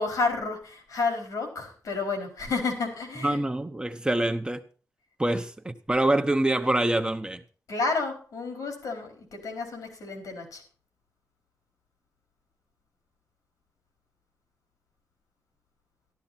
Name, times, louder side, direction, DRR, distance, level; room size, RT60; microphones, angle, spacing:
voice 1, 0.0-3.4 5.3-5.4 7.7-10.6, left 3 dB, 90° left, 4.3 m, -31 dB
voice 2, 3.2-4.6 5.2-7.4, right 1 dB, 15° right, 1.0 m, -25 dB
13.5 x 12.0 x 4.3 m
cardioid pair, 80°, 6 cm